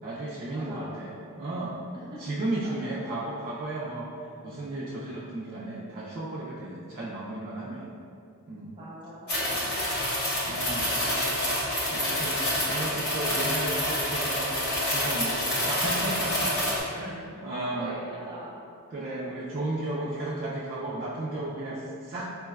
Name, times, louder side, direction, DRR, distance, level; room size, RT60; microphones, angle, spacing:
voice 1, 0.0-1.8 2.2-4.1 4.4-7.9 8.5-8.8 10.5-14.5 14.8-17.9 18.9-22.3, right 2 dB, 40° right, -7 dB, 0.3 m, -34 dB
voice 2, 0.5-1.0 1.9-2.2 2.6-2.7 8.8-10.0 16.7-18.5, right 1 dB, 20° right, -8 dB, 0.8 m, -42 dB
sound 1, 9.3-16.8, left 1 dB, 50° left, 0.8 m, -27 dB
4.5 x 2.0 x 2.2 m, 2.4 s
head